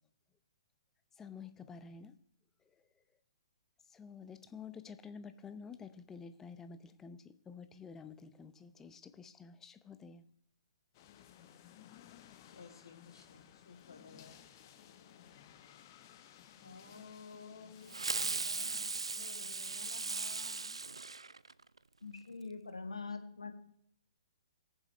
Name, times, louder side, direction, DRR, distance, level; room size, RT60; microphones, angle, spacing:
voice 1, 1.2-2.1 3.9-10.2, left 5 dB, 15° left, 0.7 m, -50 dB
sound 1, 10.9-19.3, left 10 dB, 40° left, 1.0 m, -58 dB
voice 2, 12.5-14.4 14.7-15.3 16.5-20.7, left 4 dB, 65° left, 2.8 m, -55 dB
Fireworks, 17.9-21.8, right 4 dB, 80° right, 0.3 m, -38 dB
voice 3, 22.0-23.5, left 4 dB, 80° left, 1.6 m, -43 dB
21.0 x 7.2 x 3.2 m
figure-of-eight pair, 120°, 3 cm